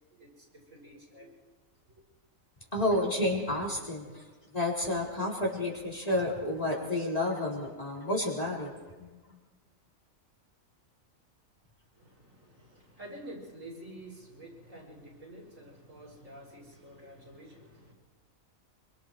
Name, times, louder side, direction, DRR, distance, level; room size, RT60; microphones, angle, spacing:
voice 1, 0.1-1.3 11.9-17.9, right 1 dB, 65° right, -1 dB, 6.6 m, -49 dB
voice 2, 2.7-4.2 4.5-8.7 9.0-9.1, left 1 dB, 25° left, -2 dB, 4.2 m, -30 dB
27.0 x 24.5 x 4.8 m, 1.3 s
omnidirectional pair, 1.4 m